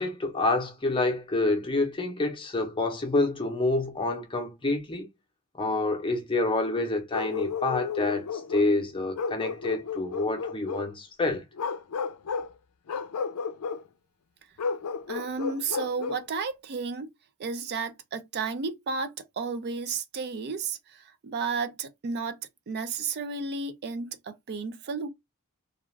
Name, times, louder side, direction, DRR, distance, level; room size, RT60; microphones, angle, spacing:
voice 1, 0.0-5.1 5.6-11.4, left 2 dB, 25° left, 0.7 m, -27 dB
Bark, 7.1-8.7 9.1-10.9 11.5-12.5 12.9-13.8 14.6-16.3, left 5 dB, 80° left, 0.4 m, -33 dB
voice 2, 15.1-17.1 17.4-22.4 22.7-25.1, right 4 dB, 50° right, 0.4 m, -32 dB
2.4 x 2.3 x 3.1 m
head